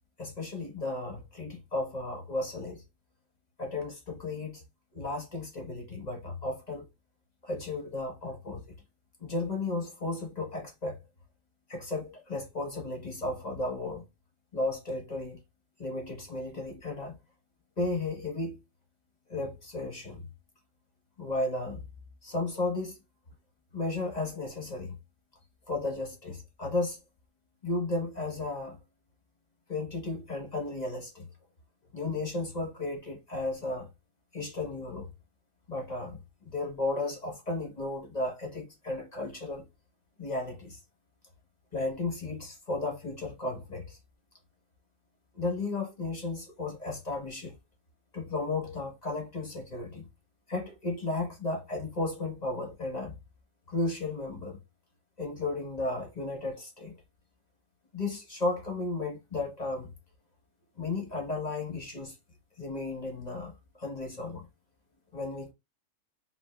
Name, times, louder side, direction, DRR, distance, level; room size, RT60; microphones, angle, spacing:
voice 1, 0.2-2.8 3.6-4.6 4.9-6.9 7.4-8.8 9.2-11.0 11.7-14.0 14.5-15.4 15.8-17.1 17.8-18.6 19.3-20.3 21.2-21.8 22.2-23.0 23.7-25.0 25.7-27.0 27.6-28.8 29.7-31.3 31.9-33.9 34.3-35.1 35.7-39.7 40.2-40.8 41.7-44.0 45.3-47.6 48.1-50.1 50.5-53.2 53.7-54.6 55.2-56.9 57.9-59.9 60.8-62.2 62.6-64.5 65.1-65.5, left 2 dB, 30° left, 1.4 m, -34 dB
4.7 x 4.0 x 2.4 m
omnidirectional pair, 1.6 m